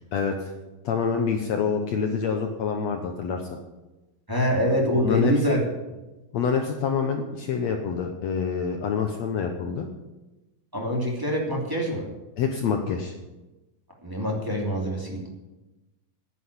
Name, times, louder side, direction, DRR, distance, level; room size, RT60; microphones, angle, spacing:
voice 1, 0.1-0.5 0.8-3.4 4.9-5.6 6.3-9.9 12.4-13.1, left 6 dB, 75° left, 4 dB, 1.5 m, -26 dB
voice 2, 4.3-5.6 10.7-12.0 14.0-15.3, equal, 5° right, -3 dB, 2.0 m, -25 dB
10.5 x 10.0 x 8.2 m, 1.1 s
omnidirectional pair, 4.4 m